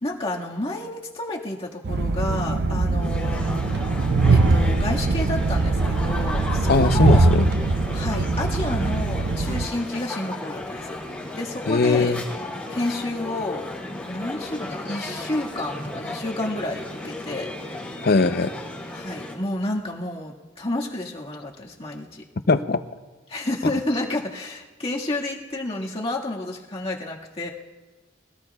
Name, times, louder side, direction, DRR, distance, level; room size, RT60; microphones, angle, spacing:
voice 1, 0.0-3.7 4.3-7.3 7.9-11.0 11.4-12.2 12.7-13.7 14.1-17.5 18.9-22.2 23.3-27.5, left 2 dB, 30° left, -3 dB, 1.8 m, -30 dB
Train, 1.8-9.7, right 3 dB, 60° right, 0.6 m, -21 dB
sound 1, 3.0-19.3, left 2 dB, 5° left, 3.4 m, -34 dB
voice 2, 6.7-7.4 11.7-12.2 18.0-18.5 22.5-22.8, left 3 dB, 55° left, 10 dB, 0.7 m, -20 dB
24.0 x 18.0 x 2.4 m, 1.2 s
head